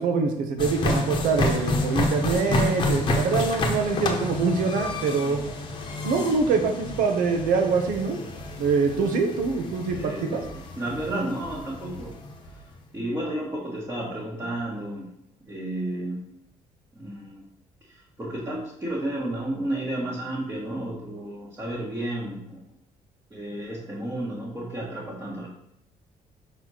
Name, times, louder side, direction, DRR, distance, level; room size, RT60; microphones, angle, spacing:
voice 1, 0.0-5.4 6.0-8.2 8.6-10.4, right 4 dB, 80° right, 5 dB, 1.1 m, -24 dB
sound 1, 0.6-12.6, left 2 dB, 35° left, 1.0 m, -29 dB
voice 2, 9.9-10.5 10.8-12.2 12.9-15.1 15.4-16.2 16.9-17.4 17.9-22.6 23.3-25.5, right 1 dB, 15° right, -6 dB, 1.4 m, -32 dB
5.6 x 4.3 x 6.2 m, 0.78 s
cardioid pair, 170°, 14 cm